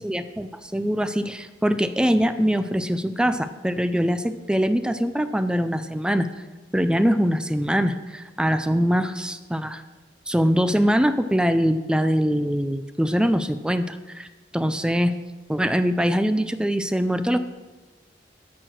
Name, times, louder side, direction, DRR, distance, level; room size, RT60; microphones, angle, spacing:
voice 1, 0.0-6.3 6.7-9.8 10.3-14.3 14.5-15.2 15.5-17.4, equal, 5° right, 11 dB, 0.5 m, -23 dB
14.0 x 6.2 x 6.3 m, 1.2 s
head